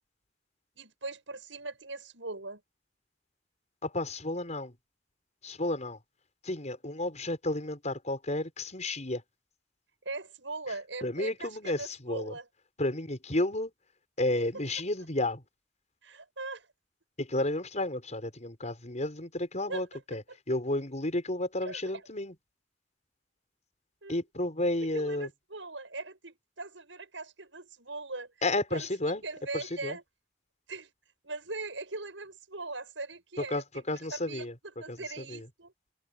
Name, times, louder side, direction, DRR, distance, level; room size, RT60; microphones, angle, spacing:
voice 1, 0.8-2.6 10.0-12.4 16.0-16.7 19.7-19.8 21.6-21.8 24.0-24.2 24.9-28.3 28.7-28.9 29.2-30.0 30.7-30.9 31.2-33.8 34.1-34.5 34.8-35.7, right 3 dB, 85° right, 7.7 m, -40 dB
voice 2, 3.8-4.8 5.4-6.0 6.4-9.2 11.0-12.4 12.8-13.7 14.2-15.4 17.2-22.3 24.1-25.3 28.4-29.2 29.5-30.0 33.4-34.6 34.9-35.5, left 1 dB, 40° left, 5.8 m, -32 dB
head